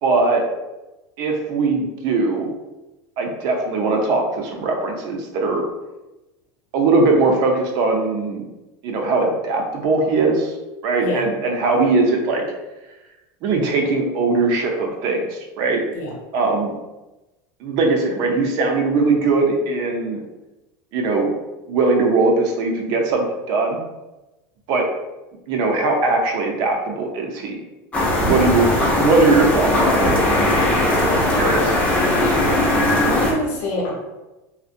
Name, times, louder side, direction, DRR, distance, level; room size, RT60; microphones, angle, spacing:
voice 1, 0.0-0.4 1.2-2.5 3.2-5.6 6.7-8.4 8.8-10.6 10.8-12.4 13.4-15.8 16.3-16.7 17.6-20.2 20.9-21.3 21.7-23.8 24.7-24.8 25.5-27.6 28.2-30.1 31.3-31.8, right 3 dB, 50° right, 2 dB, 0.5 m, -20 dB
voice 2, 11.0-11.3 15.9-16.1 28.2-28.6 31.0-31.1 32.2-32.4 33.0-33.9, left 1 dB, 80° left, -3 dB, 0.8 m, -27 dB
sound 1, 27.9-33.3, left 1 dB, 15° left, 0.5 m, -18 dB
2.5 x 2.1 x 2.5 m, 1.0 s
supercardioid pair, 155°, 8 cm